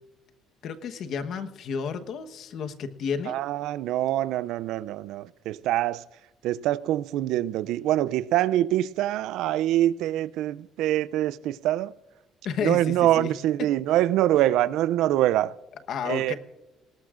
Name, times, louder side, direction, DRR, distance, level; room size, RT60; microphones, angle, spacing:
voice 1, 0.6-3.4 12.4-13.3 15.9-16.4, left 6 dB, 55° left, 1.1 m, -31 dB
voice 2, 3.3-6.0 6.4-11.9 12.6-15.6 16.0-16.3, right 13 dB, 75° right, 0.4 m, -24 dB
19.0 x 18.5 x 2.5 m
cardioid pair, 140°, 0 cm